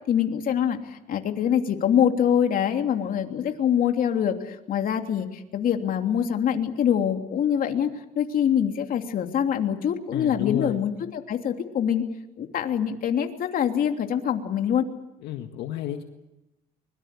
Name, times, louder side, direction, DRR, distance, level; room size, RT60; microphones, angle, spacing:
voice 1, 0.1-7.9 8.1-12.0 12.4-14.9, left 9 dB, 55° left, 5 dB, 3.0 m, -24 dB
voice 2, 10.1-10.9 15.2-16.0, left 12 dB, 85° left, 5 dB, 1.8 m, -31 dB
24.5 x 22.5 x 8.5 m, 0.96 s
cardioid pair, 110°, 17 cm